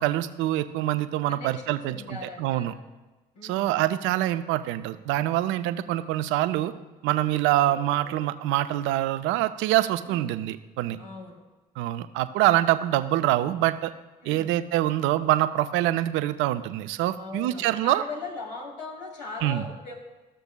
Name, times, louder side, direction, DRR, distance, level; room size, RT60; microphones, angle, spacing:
voice 1, 0.0-2.7 3.4-6.7 7.0-11.0 11.8-13.9 14.2-18.0 19.4-19.6, right 14 dB, 65° right, 12 dB, 0.5 m, -25 dB
voice 2, 1.3-2.8 3.3-3.8 7.6-8.2 10.0-10.4 11.0-11.5 14.2-14.6 17.1-19.9, left 3 dB, 90° left, 0 dB, 1.3 m, -40 dB
14.5 x 6.8 x 2.3 m, 1.1 s
hypercardioid pair, 50°, 21 cm